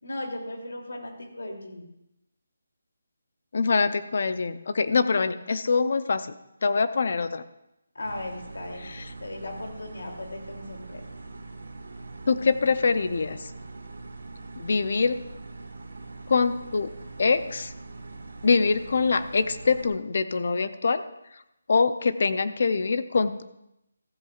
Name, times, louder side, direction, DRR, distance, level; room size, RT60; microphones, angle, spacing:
voice 1, 0.0-1.9 7.9-11.0, left 1 dB, 75° left, 1 dB, 2.9 m, -37 dB
voice 2, 3.5-6.3 6.6-7.4 8.8-9.1 12.3-13.5 14.6-15.3 16.3-17.7 18.4-21.0 21.3-21.4 21.7-23.4, left 4 dB, 45° left, 12 dB, 0.6 m, -24 dB
sound 1, 8.0-19.9, right 3 dB, 80° right, 2.0 m, -42 dB
15.0 x 13.5 x 2.4 m, 0.85 s
hypercardioid pair, 175°, 0 cm